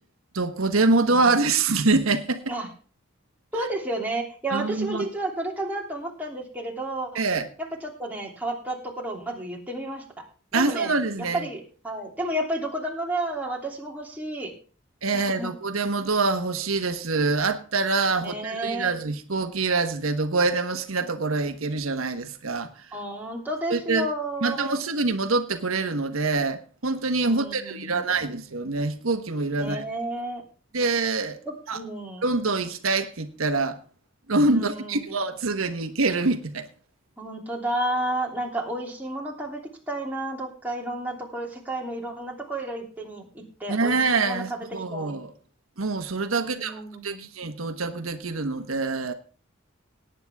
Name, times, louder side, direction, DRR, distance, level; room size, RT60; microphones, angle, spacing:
voice 1, 0.3-2.5 3.6-3.7 4.5-5.1 7.1-7.5 10.5-11.4 15.0-22.9 23.7-24.1 24.4-29.8 30.7-31.4 31.7-31.8 32.2-33.8 34.3-36.7 43.7-45.3 45.8-49.1, right 3 dB, 85° right, 1.2 m, -25 dB
voice 2, 3.5-7.2 7.6-10.0 10.5-10.9 11.2-14.5 15.1-15.5 18.1-18.9 22.9-24.8 27.2-28.3 29.5-30.4 31.5-32.3 34.5-35.2 37.2-39.6 39.9-45.2 46.4-47.3, right 1 dB, 10° right, 3.0 m, -32 dB
18.5 x 9.1 x 3.5 m
head